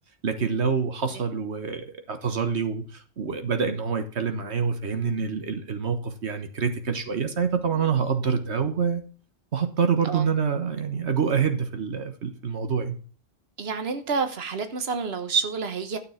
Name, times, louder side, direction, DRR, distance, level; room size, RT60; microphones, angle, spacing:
voice 1, 0.2-9.0 9.5-13.0, right 6 dB, 85° right, 1.6 m, -26 dB
voice 2, 13.6-16.0, right 5 dB, 70° right, 1.5 m, -28 dB
12.5 x 7.1 x 5.8 m
omnidirectional pair, 1.1 m